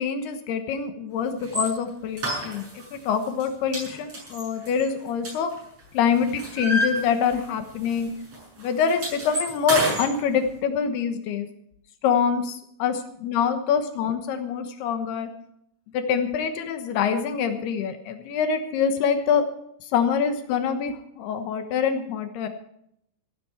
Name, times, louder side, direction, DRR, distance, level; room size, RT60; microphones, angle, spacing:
voice 1, 0.0-5.5 5.9-8.1 8.6-11.5 12.0-15.3 15.9-19.5 19.8-22.5, left 7 dB, 85° left, 7 dB, 3.3 m, -25 dB
sound 1, 1.4-1.7 2.2-2.9 3.2-3.4 3.7-5.8 6.1-7.6 7.8-8.0 8.3-10.1, equal, 40° right, 8.5 m, -29 dB
16.0 x 15.5 x 4.5 m, 0.72 s
omnidirectional pair, 4.6 m